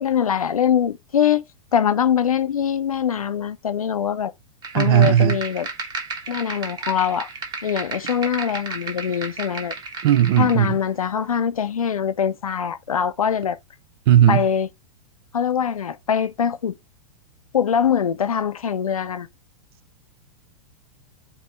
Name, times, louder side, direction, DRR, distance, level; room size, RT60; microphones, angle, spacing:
voice 1, 0.0-1.4 1.7-4.3 4.7-5.7 6.3-7.3 7.6-9.7 10.4-13.6 14.3-14.7 15.3-16.8 17.5-19.3, left 8 dB, 70° left, 0.6 m, -23 dB
sound 1, 4.6-10.7, right 4 dB, 20° right, 1.2 m, -33 dB
voice 2, 4.7-5.4 10.0-10.7 14.1-14.4, right 11 dB, 45° right, 0.4 m, -16 dB
4.5 x 2.7 x 4.3 m
figure-of-eight pair, 100°, 19 cm